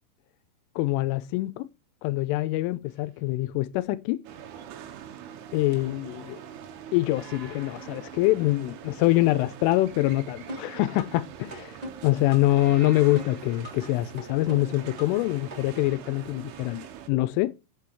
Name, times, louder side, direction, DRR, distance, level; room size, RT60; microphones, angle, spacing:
voice 1, 0.8-1.7 2.0-4.2 5.5-6.4 6.9-11.8 12.0-17.5, left 17 dB, 85° left, 3.1 m, -25 dB
sound 1, 2.9-3.2 7.1-9.2 12.5-14.5, right 5 dB, 50° right, 3.5 m, -51 dB
sound 2, 4.3-17.1, right 9 dB, 80° right, 3.8 m, -44 dB
sound 3, 10.5-11.2 11.5-12.5 12.8-13.9 14.2-15.2 15.5-15.6, equal, 15° right, 1.4 m, -39 dB
8.5 x 7.5 x 4.7 m
omnidirectional pair, 5.7 m